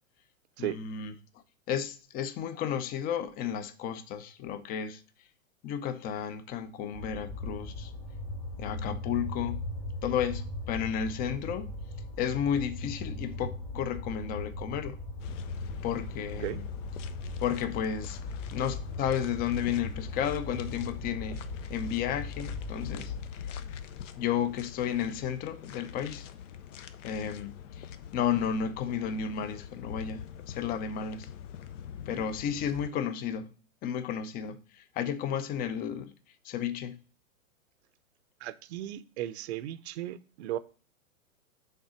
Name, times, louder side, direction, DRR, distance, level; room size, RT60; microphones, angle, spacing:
voice 1, 0.6-1.1 1.7-5.0 5.6-7.9 8.6-9.6 10.0-11.7 12.2-15.0 15.8-16.7 17.4-18.2 18.5-21.4 21.7-23.5 24.2-26.3 27.0-31.3 32.1-33.5 33.8-36.1 36.4-37.0, left 8 dB, 20° left, 0.6 m, -33 dB
sound 1, 6.9-23.2, left 2 dB, 40° left, 2.3 m, -39 dB
sound 2, 15.2-32.9, left 8 dB, 60° left, 0.8 m, -44 dB
voice 2, 38.4-40.6, right 13 dB, 50° right, 0.7 m, -36 dB
6.6 x 3.9 x 6.3 m
hypercardioid pair, 115°, 42 cm